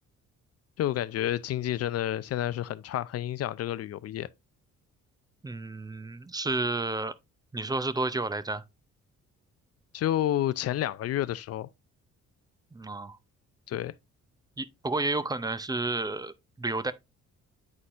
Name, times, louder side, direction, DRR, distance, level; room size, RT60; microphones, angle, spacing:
voice 1, 0.8-4.3 9.9-11.7 13.7-13.9, left 12 dB, 55° left, 0.4 m, -30 dB
voice 2, 5.4-7.1 7.5-8.6 12.7-13.2 14.6-16.9, right 2 dB, 15° right, 0.5 m, -31 dB
9.6 x 4.2 x 2.5 m
cardioid pair, 90°, 30 cm